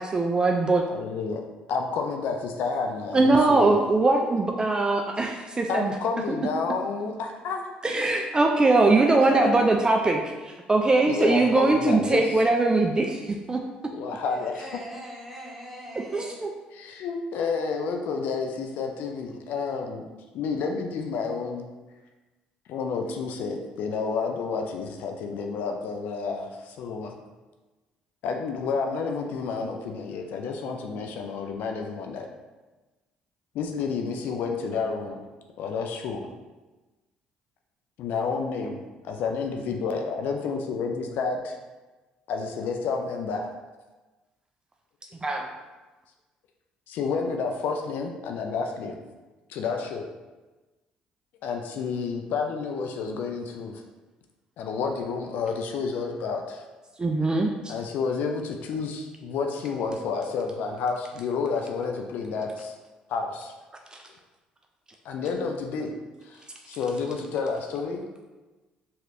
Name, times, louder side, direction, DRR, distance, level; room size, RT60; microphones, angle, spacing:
voice 1, 0.0-0.8 3.1-5.9 7.8-13.6 16.1-16.5 45.2-45.5 57.0-57.7 63.9-64.0, right 2 dB, 25° right, 2 dB, 0.3 m, -22 dB
voice 2, 0.9-1.4 1.7-3.8 5.7-7.7 9.0-9.5 11.1-12.2 13.9-14.7 16.7-20.1 20.3-21.7 22.7-27.1 28.2-32.3 33.5-35.2 35.6-36.3 38.0-41.6 42.3-43.5 46.9-49.0 49.5-50.1 51.4-53.8 54.6-56.6 57.7-62.8 63.1-63.5 65.0-65.9 66.2-68.0, left 5 dB, 70° left, 3 dB, 0.4 m, -30 dB
voice 3, 14.2-16.3, equal, 5° right, -3 dB, 0.9 m, -41 dB
3.1 x 2.8 x 2.5 m, 1.2 s
supercardioid pair, 65°, 3 cm